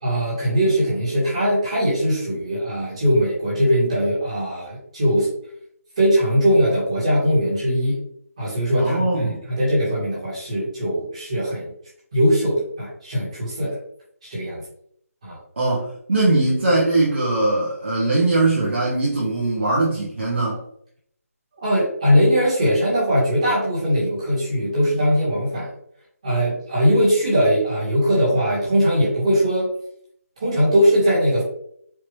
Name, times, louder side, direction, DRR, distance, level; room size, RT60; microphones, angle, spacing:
voice 1, 0.0-5.3 6.0-8.0 8.4-11.7 12.1-13.8 14.3-14.6 15.2-15.4 21.6-25.7 26.2-29.7 30.4-31.4, equal, 25° right, -8 dB, 1.7 m, -20 dB
voice 2, 8.8-9.4 15.6-20.6, right 2 dB, 45° right, -5 dB, 1.1 m, -21 dB
4.7 x 2.9 x 3.1 m, 0.68 s
figure-of-eight pair, 175°, 8 cm